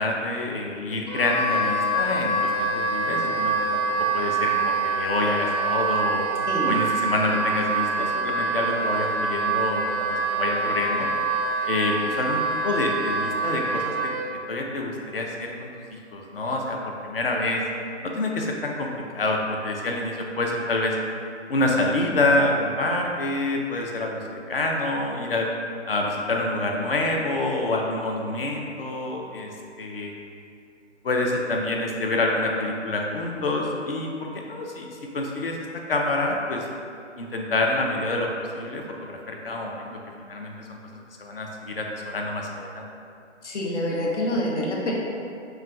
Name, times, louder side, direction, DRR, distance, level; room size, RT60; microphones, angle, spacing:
voice 1, 0.0-3.8 4.1-6.3 6.6-11.1 11.7-13.9 14.5-17.6 18.0-21.0 21.5-25.5 25.9-29.5 29.8-30.1 31.0-35.6 35.9-36.7 37.2-40.8 41.2-42.9, left 2 dB, 55° left, 0 dB, 0.4 m, -27 dB
Wind instrument woodwind instrument, 1.1-14.3, right 3 dB, 35° right, 0.4 m, -25 dB
voice 2, 6.5-6.8 43.4-44.9, left 1 dB, 70° left, -3 dB, 0.8 m, -26 dB
4.0 x 2.2 x 2.3 m, 2.5 s
hypercardioid pair, 165°, 36 cm